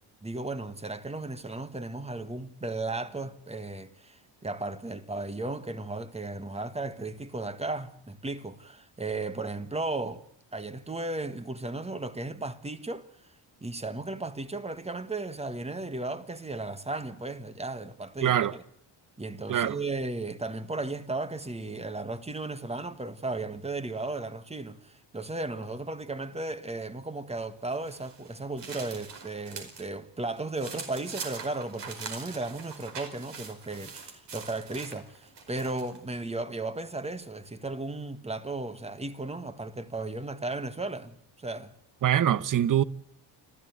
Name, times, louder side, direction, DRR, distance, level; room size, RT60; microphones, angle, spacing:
voice 1, 0.2-10.2 10.5-13.1 13.6-18.6 19.2-41.8, right 2 dB, 15° right, 1.5 m, -35 dB
voice 2, 18.2-18.5 19.5-19.8 42.0-42.8, right 11 dB, 40° right, 0.9 m, -24 dB
sound 1, 27.7-29.9 30.2-36.0, right 5 dB, 60° right, 5.0 m, -43 dB
29.0 x 13.0 x 9.5 m
cardioid pair, 100°, 47 cm